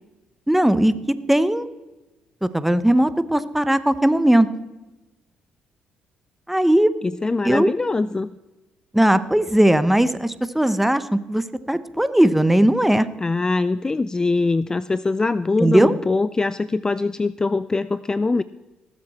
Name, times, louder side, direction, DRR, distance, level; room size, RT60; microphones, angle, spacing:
voice 1, 0.5-0.9 1.3-1.7 2.4-4.5 6.5-6.9 7.4-7.7 8.9-13.1 15.6-15.9, right 1 dB, 5° right, 14 dB, 0.8 m, -18 dB
voice 2, 7.0-8.3 13.2-18.4, left 3 dB, 25° left, 16 dB, 0.4 m, -22 dB
19.0 x 7.6 x 4.3 m, 1.1 s
supercardioid pair, 65°, 3 cm